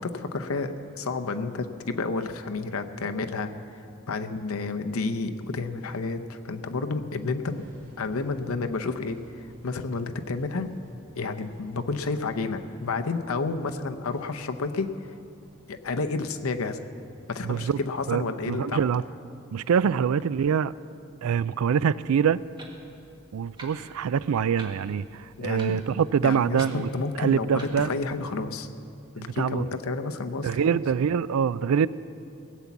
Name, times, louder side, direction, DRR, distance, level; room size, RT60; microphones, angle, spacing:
voice 1, 0.0-3.5 4.1-7.6 8.0-10.7 11.2-14.9 15.7-16.8 17.3-18.8 25.4-25.8 26.2-28.7 29.1-30.8, left 3 dB, 90° left, 7 dB, 0.8 m, -30 dB
sound 1, 7.5-18.1, equal, 65° right, 3.5 m, -58 dB
voice 2, 17.4-17.8 18.1-19.0 19.5-20.7 21.2-22.4 23.3-26.9 27.2-27.9 29.2-29.6 30.4-31.9, right 7 dB, 90° right, 18 dB, 0.4 m, -25 dB
Clock, 22.3-28.2, right 1 dB, 20° right, 1.4 m, -49 dB
17.5 x 8.2 x 7.2 m, 2.5 s
head